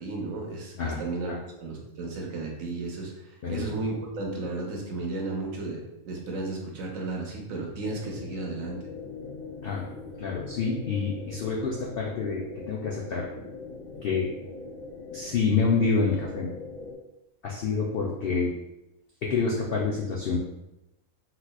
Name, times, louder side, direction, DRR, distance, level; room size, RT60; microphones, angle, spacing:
voice 1, 0.0-1.3 1.6-3.1 3.5-8.8, right 3 dB, 70° right, -1 dB, 1.1 m, -33 dB
sound 1, 7.8-16.9, left 4 dB, 50° left, 1.5 m, -41 dB
voice 2, 10.2-13.3 14.0-14.3 15.1-16.5 17.4-18.5 19.2-20.4, left 4 dB, 90° left, -3 dB, 0.5 m, -27 dB
3.9 x 2.9 x 2.2 m, 0.92 s
omnidirectional pair, 1.6 m